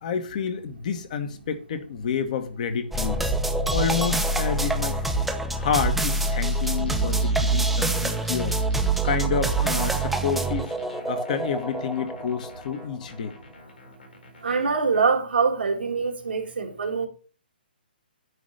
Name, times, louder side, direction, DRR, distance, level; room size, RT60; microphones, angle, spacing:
voice 1, 0.0-3.2 3.7-5.1 5.5-8.6 9.0-10.8 11.1-13.4, left 7 dB, 50° left, 1.2 m, -29 dB
sound 1, 2.9-13.1, right 2 dB, ahead, 0.6 m, -25 dB
sound 2, 6.2-15.1, left 2 dB, 85° left, 4.4 m, -48 dB
voice 2, 14.4-17.1, right 5 dB, 85° right, 1.9 m, -24 dB
9.5 x 3.2 x 6.4 m
hypercardioid pair, 145°, 5 cm